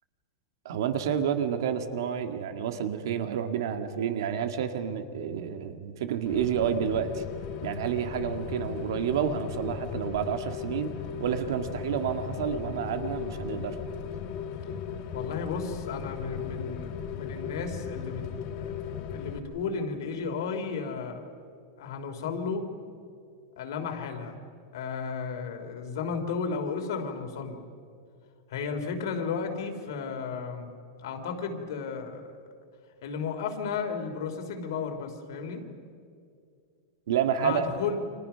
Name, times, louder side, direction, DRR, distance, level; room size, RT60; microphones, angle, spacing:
voice 1, 0.6-7.2 7.6-10.9 11.2-13.8 37.1-37.7, right 8 dB, 65° right, 7 dB, 2.0 m, -29 dB
Rain, 6.3-19.4, left 7 dB, 35° left, 1.6 m, -37 dB
voice 2, 15.1-18.3 18.6-21.3 21.8-22.7 23.6-24.4 24.7-27.6 28.5-30.7 31.0-32.3 33.0-35.6 37.4-38.0, left 5 dB, 65° left, 5 dB, 3.3 m, -33 dB
30.0 x 26.5 x 5.8 m, 2.3 s
supercardioid pair, 180°, 2 cm